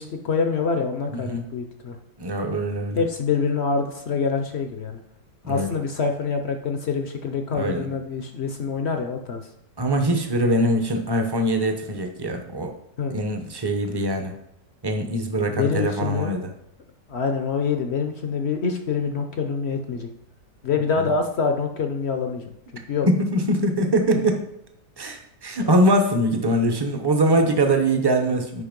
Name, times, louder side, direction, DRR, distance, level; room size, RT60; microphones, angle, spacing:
voice 1, 0.0-2.0 2.9-5.0 5.5-9.4 13.0-13.2 15.5-16.3 17.1-20.1 20.6-22.5 22.9-23.1 24.1-24.2, left 5 dB, 60° left, 5 dB, 0.7 m, -25 dB
voice 2, 2.2-3.0 5.4-5.7 7.5-7.9 9.8-12.7 13.1-14.3 14.8-16.5 23.1-24.4 25.0-28.6, right 1 dB, 30° right, 4 dB, 0.4 m, -22 dB
8.5 x 5.0 x 5.2 m, 0.79 s
omnidirectional pair, 1.9 m